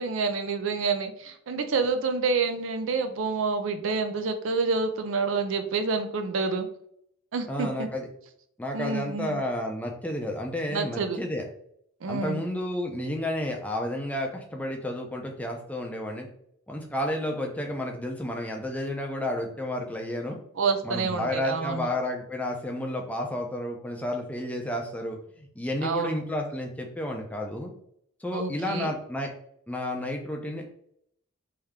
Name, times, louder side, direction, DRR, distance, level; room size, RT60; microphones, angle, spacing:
voice 1, 0.0-6.7 7.3-7.9 8.7-9.4 10.7-11.2 12.0-12.4 20.6-21.9 25.8-26.2 28.3-28.9, right 4 dB, 65° right, 8 dB, 0.4 m, -28 dB
voice 2, 7.5-8.1 8.6-11.4 12.1-16.3 16.7-20.4 20.8-27.7 28.2-29.3 29.7-30.6, left 1 dB, 5° left, 1 dB, 0.5 m, -31 dB
3.4 x 2.7 x 3.5 m, 0.69 s
head